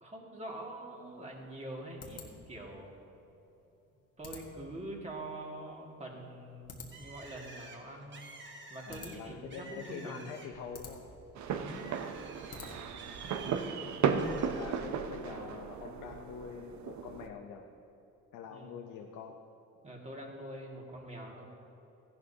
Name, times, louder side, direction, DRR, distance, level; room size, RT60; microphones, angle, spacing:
voice 1, 0.0-2.9 4.2-8.3 8.7-10.3 11.5-12.0 18.5-18.8 19.8-21.4, right 1 dB, 20° right, -1 dB, 2.1 m, -44 dB
sound 1, 0.9-13.1, left 4 dB, 55° left, 1.6 m, -53 dB
Bird, 6.9-10.7 11.1-13.7 14.2-14.8, right 2 dB, 40° right, 1.4 m, -52 dB
voice 2, 8.9-11.1 13.3-13.8 14.4-17.7 18.3-19.4, left 6 dB, 85° left, 3 dB, 0.8 m, -45 dB
sound 2, 11.4-17.3, right 6 dB, 70° right, 0.7 m, -35 dB
14.5 x 11.0 x 2.8 m, 2.9 s
cardioid pair, 90°, 30 cm